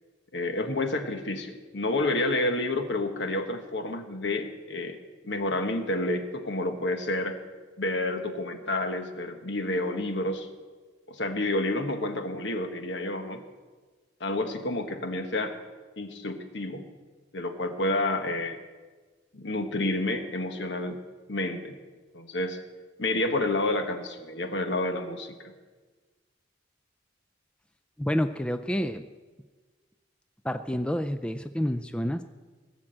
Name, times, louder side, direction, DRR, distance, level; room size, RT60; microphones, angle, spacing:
voice 1, 0.3-7.4 7.8-10.5 11.1-13.4 14.2-15.6 16.0-16.9 17.3-18.6 19.3-21.0 21.3-21.8 22.1-22.6 23.0-25.5, left 2 dB, 65° left, 7 dB, 1.3 m, -29 dB
voice 2, 28.0-29.0 30.4-32.2, equal, 5° left, 9 dB, 0.3 m, -28 dB
19.0 x 7.4 x 7.8 m, 1.4 s
head